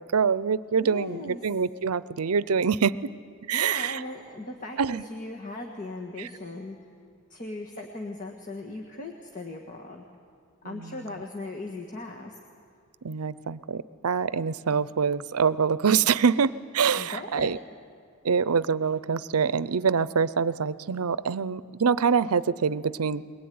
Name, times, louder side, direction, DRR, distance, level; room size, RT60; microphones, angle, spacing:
voice 1, 0.0-3.1 3.5-4.0 4.8-5.0 6.2-6.3 10.6-11.0 13.0-17.6 18.2-23.2, right 6 dB, 85° right, 17 dB, 0.6 m, -25 dB
voice 2, 0.8-1.4 3.5-6.8 7.3-10.0 10.6-12.4 16.9-17.5, left 2 dB, 40° left, 0 dB, 1.7 m, -38 dB
22.0 x 20.5 x 9.5 m, 2.2 s
head